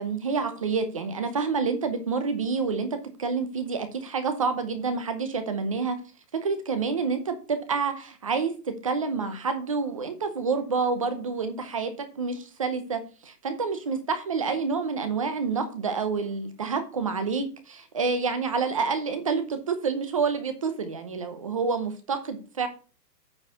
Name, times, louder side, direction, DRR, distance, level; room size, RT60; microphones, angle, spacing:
voice 1, 0.0-6.0 6.3-22.7, right 5 dB, 20° right, 9 dB, 0.7 m, -28 dB
8.8 x 4.6 x 5.5 m, 0.35 s
hypercardioid pair, 165°, 49 cm